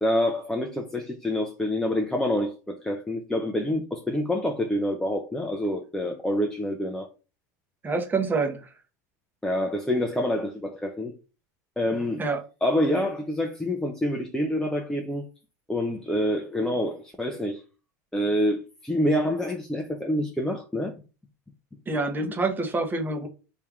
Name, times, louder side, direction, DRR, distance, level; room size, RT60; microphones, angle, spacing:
voice 1, 0.0-7.1 9.4-11.1 11.8-12.2 12.6-15.2 15.7-17.6 18.1-20.9, left 1 dB, 5° left, 0.6 m, -27 dB
voice 2, 7.8-8.7 12.2-12.4 21.9-23.3, right 3 dB, 20° right, 1.0 m, -27 dB
3.3 x 2.8 x 3.5 m
hypercardioid pair, 95°, 9 cm